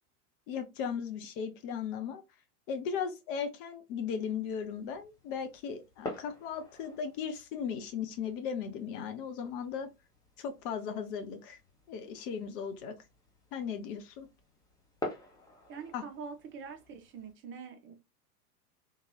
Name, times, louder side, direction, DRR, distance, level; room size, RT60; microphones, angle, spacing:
voice 1, 0.5-2.2 2.7-9.9 10.4-11.6 11.9-13.0 13.5-14.3 15.9-16.0, left 7 dB, 35° left, 0.6 m, -37 dB
sound 1, 4.3-17.3, left 1 dB, 10° left, 0.9 m, -48 dB
voice 2, 15.7-17.9, right 6 dB, 25° right, 0.8 m, -44 dB
3.7 x 2.8 x 3.0 m
figure-of-eight pair, 95°, 46 cm